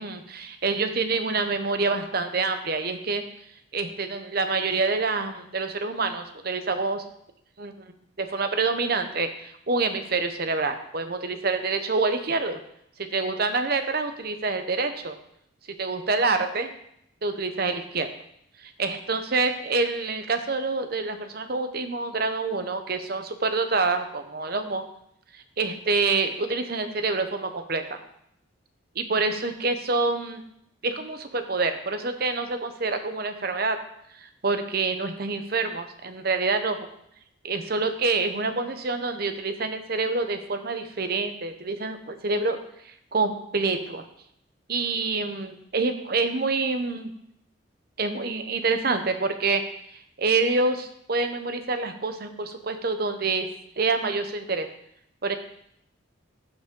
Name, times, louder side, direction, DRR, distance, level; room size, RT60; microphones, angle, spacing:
voice 1, 0.0-3.2 3.7-7.0 7.6-7.7 8.2-12.6 13.0-15.2 15.8-16.7 17.2-18.1 18.6-24.8 25.3-28.0 29.0-30.4 30.8-33.8 34.2-36.8 37.4-42.6 42.8-44.1 44.7-47.1 48.0-49.6 50.2-53.5 53.8-54.7 55.2-55.3, right 3 dB, 50° right, 8 dB, 0.8 m, -27 dB
14.5 x 5.0 x 3.8 m, 0.73 s
head